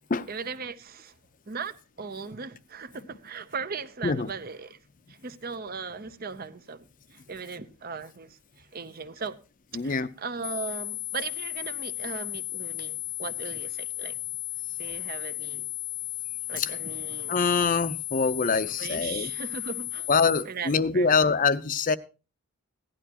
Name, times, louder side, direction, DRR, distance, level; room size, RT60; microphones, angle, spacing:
voice 1, 0.3-1.1 1.5-4.8 5.1-9.4 9.7-14.1 14.8-15.7 16.5-17.4 18.7-20.1 20.4-21.3, right 5 dB, 45° right, 0.7 m, -38 dB
voice 2, 9.7-10.1 16.6-16.7 17.3-19.3 20.1-22.0, left 5 dB, 40° left, 0.6 m, -24 dB
sound 1, 10.4-20.4, left 17 dB, 80° left, 0.7 m, -35 dB
16.5 x 11.5 x 2.9 m
head